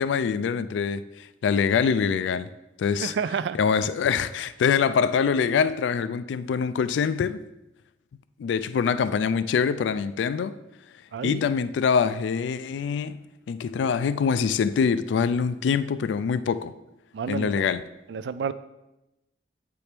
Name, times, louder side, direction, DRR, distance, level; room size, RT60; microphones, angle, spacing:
voice 1, 0.0-2.5 2.8-3.1 3.6-7.4 8.4-10.6 11.2-13.2 13.5-16.7 17.3-17.8, left 6 dB, 90° left, 0.3 m, -24 dB
voice 2, 3.0-3.6 11.1-11.5 17.1-17.6 18.1-18.5, right 6 dB, 75° right, 0.3 m, -30 dB
8.2 x 4.3 x 3.4 m
head